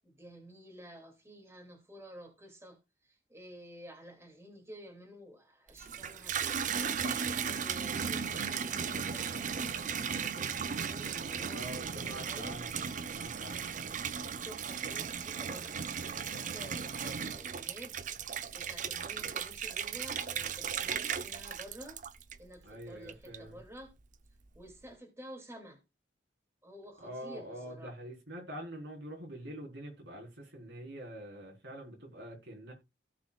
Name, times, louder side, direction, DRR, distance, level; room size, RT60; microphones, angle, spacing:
voice 1, 0.0-9.4 9.7-12.6 14.4-22.0 22.4-23.9 24.5-25.8 26.6-27.9, equal, 15° right, 2.4 m, -51 dB
Water tap faucet / Bathtub (filling or washing), 5.7-22.6 23.1-23.7, right 7 dB, 45° right, 0.6 m, -36 dB
voice 2, 11.5-13.9 22.6-23.6 27.0-32.7, right 1 dB, 85° right, 4.1 m, -45 dB
16.5 x 6.2 x 2.4 m
head